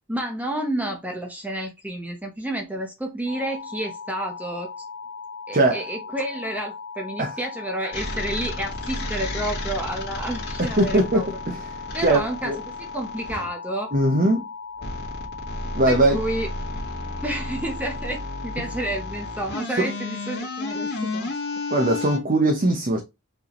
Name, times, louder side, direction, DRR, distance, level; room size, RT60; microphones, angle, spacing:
voice 1, 0.1-4.7 5.5-11.3 11.9-12.5 12.8-13.9 15.9-16.5 17.2-21.4, right 1 dB, 5° right, 0.8 m, -30 dB
sound 1, 3.3-19.4, left 5 dB, 80° left, 1.1 m, -38 dB
sound 2, 7.9-13.5 14.8-22.2, left 2 dB, 50° left, 1.7 m, -32 dB
voice 2, 10.6-11.6 12.0-12.6 13.9-14.4 15.7-16.2 18.6-18.7 19.8-19.9 21.7-23.0, right 1 dB, 40° right, 0.8 m, -20 dB
4.8 x 3.5 x 3.0 m
head